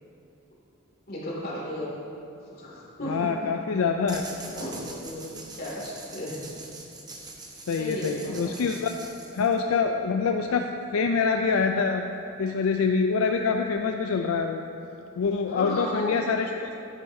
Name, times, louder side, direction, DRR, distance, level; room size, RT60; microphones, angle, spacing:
voice 1, 1.1-2.1 2.5-3.1 4.4-6.6 7.8-8.5 15.5-16.2, left 1 dB, 45° left, -5 dB, 2.5 m, -34 dB
voice 2, 3.1-4.3 7.7-8.9 9.3-10.7 10.9-12.0 12.4-14.6 15.2-16.7, left 5 dB, 75° left, 4 dB, 0.4 m, -25 dB
sound 1, 4.1-9.8, right 2 dB, 20° right, 0.9 m, -43 dB
11.5 x 10.5 x 2.7 m, 2.7 s
head